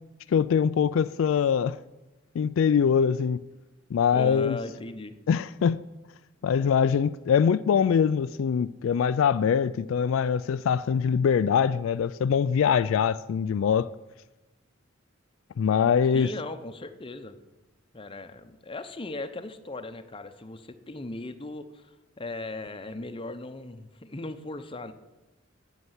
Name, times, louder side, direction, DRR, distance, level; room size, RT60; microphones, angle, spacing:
voice 1, 0.3-1.8 2.4-3.4 3.9-4.6 5.3-5.8 6.4-13.9 15.6-16.3, left 7 dB, 75° left, 0.3 m, -23 dB
voice 2, 4.1-5.1 16.1-17.4 17.9-21.9 22.2-24.9, left 2 dB, 25° left, 0.8 m, -38 dB
9.8 x 8.1 x 8.0 m
head